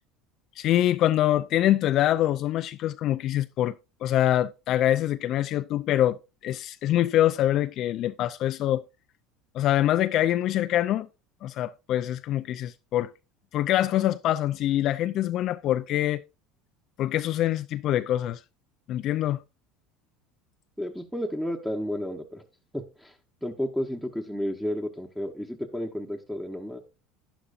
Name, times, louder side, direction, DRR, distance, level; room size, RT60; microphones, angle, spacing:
voice 1, 0.6-3.8 4.0-8.8 9.5-11.1 11.4-13.1 13.5-16.2 17.0-18.4 18.9-19.4, left 13 dB, 55° left, 0.4 m, -24 dB
voice 2, 20.8-22.4 22.7-23.1 23.4-26.8, equal, 5° right, 1.0 m, -32 dB
11.5 x 9.9 x 2.5 m
supercardioid pair, 105°, 0 cm